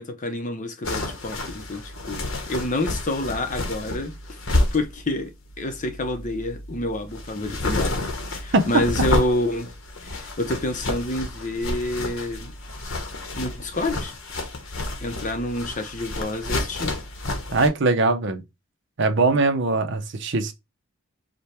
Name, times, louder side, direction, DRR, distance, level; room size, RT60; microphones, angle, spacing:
voice 1, 0.0-4.2 4.7-8.0 8.3-9.7 10.0-12.5 13.3-14.1 15.0-16.9, left 1 dB, 35° left, 0.7 m, -28 dB
sound 1, 0.8-17.7, left 2 dB, 65° left, 1.0 m, -30 dB
voice 2, 8.5-8.8 17.5-18.4 19.0-20.5, right 3 dB, 55° right, 0.7 m, -21 dB
5.1 x 2.2 x 4.3 m
head